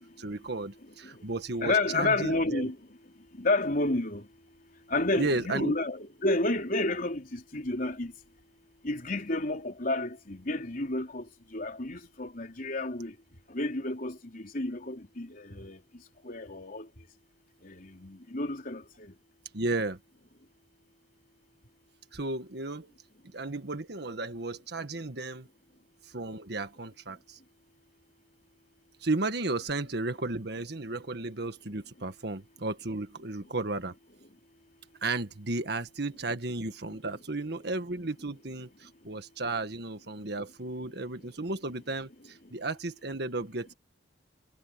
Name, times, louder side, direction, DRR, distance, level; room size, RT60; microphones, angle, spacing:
voice 1, 0.0-2.7 5.2-5.7 19.5-20.0 22.1-22.9 23.3-25.5 26.1-27.4 29.0-33.9 35.0-43.7, right 2 dB, 60° right, 1.6 m, -34 dB
voice 2, 1.6-2.7 3.4-4.2 4.9-8.1 8.8-11.2 11.5-13.1 13.5-15.8 16.3-16.8 17.8-18.8, left 2 dB, 50° left, 3.9 m, -30 dB
head